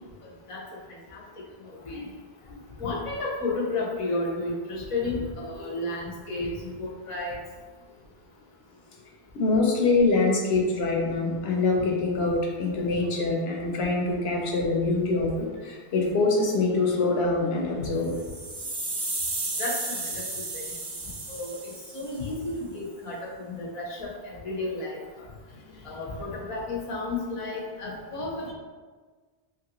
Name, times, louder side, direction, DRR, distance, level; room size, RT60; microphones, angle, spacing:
voice 1, 1.6-2.1 2.8-6.5 6.8-7.4 19.6-20.6 21.3-25.0 25.8-28.5, left 2 dB, 35° left, -4 dB, 0.7 m, -32 dB
voice 2, 9.3-18.1 25.5-25.9, left 3 dB, 85° left, 0 dB, 0.9 m, -25 dB
sound 1, 18.0-22.2, right 2 dB, 50° right, 0.7 m, -33 dB
2.9 x 2.4 x 2.9 m, 1.4 s
omnidirectional pair, 1.0 m